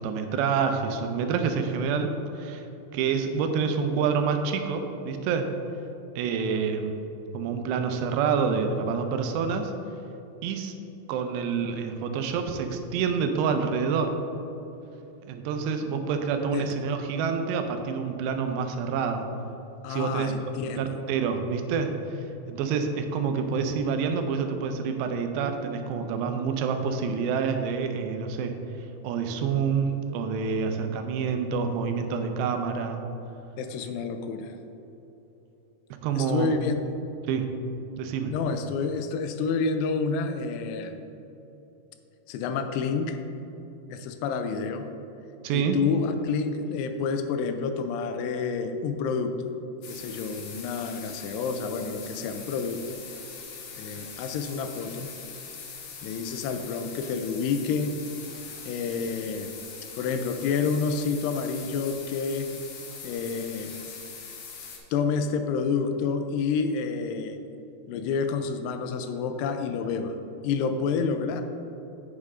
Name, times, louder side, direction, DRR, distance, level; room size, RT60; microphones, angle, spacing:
voice 1, 0.0-2.6 2.9-5.5 6.2-7.0 7.3-9.7 10.4-10.7 11.1-14.2 15.3-19.3 19.9-20.3 20.6-28.6 29.0-33.0 36.0-36.5 37.3-37.6 38.0-38.3 45.4-45.8, right 6 dB, 90° right, 6 dB, 2.8 m, -27 dB
voice 2, 19.8-20.8 33.6-34.6 36.1-36.8 38.3-41.0 42.3-43.2 43.9-44.9 45.5-49.3 49.9-52.8 53.8-55.1 56.0-57.9 58.7-59.5 60.0-62.5 63.0-63.7 64.9-67.4 67.9-70.2 70.4-71.4, left 5 dB, 85° left, 7 dB, 2.6 m, -29 dB
sound 1, 49.8-64.8, left 6 dB, 70° left, 2.2 m, -42 dB
8.5 x 6.5 x 3.6 m, 3.0 s
omnidirectional pair, 4.8 m